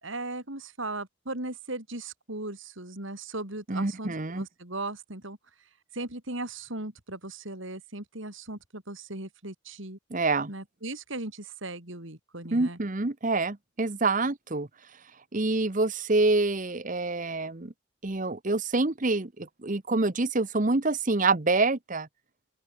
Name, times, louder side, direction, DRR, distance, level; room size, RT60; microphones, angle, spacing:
voice 1, 0.0-5.4 5.9-10.0 10.5-12.8, right 2 dB, 60° right, 4.2 m, -37 dB
voice 2, 3.7-4.4 10.1-10.5 12.5-14.7 15.3-17.7 18.0-22.1, right 3 dB, 35° right, 1.0 m, -26 dB
open air
head